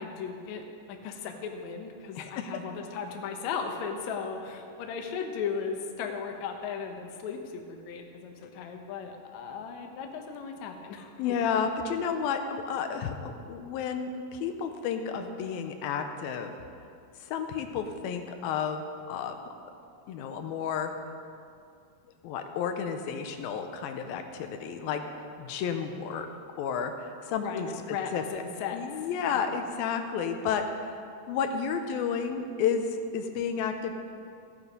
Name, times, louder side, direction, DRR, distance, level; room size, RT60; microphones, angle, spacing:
voice 1, 0.0-11.4 27.4-28.8, left 6 dB, 65° left, 4 dB, 1.9 m, -36 dB
voice 2, 2.2-2.5 11.2-16.5 17.2-19.3 20.1-20.9 22.2-25.1 25.4-26.3 26.6-28.2 28.7-33.9, left 6 dB, 85° left, 6 dB, 2.6 m, -31 dB
15.5 x 8.7 x 5.2 m, 2.4 s
omnidirectional pair, 4.2 m